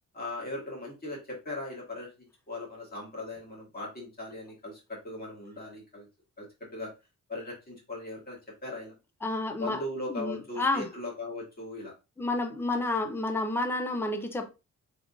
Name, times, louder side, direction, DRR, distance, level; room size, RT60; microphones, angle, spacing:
voice 1, 0.1-6.1 6.4-6.9 7.3-8.9 9.6-11.9, left 2 dB, 30° left, 2.0 m, -39 dB
voice 2, 9.2-9.8 10.1-10.9 12.2-14.5, left 2 dB, 5° left, 0.5 m, -30 dB
3.6 x 3.4 x 2.5 m
wide cardioid pair, 140°, 31 cm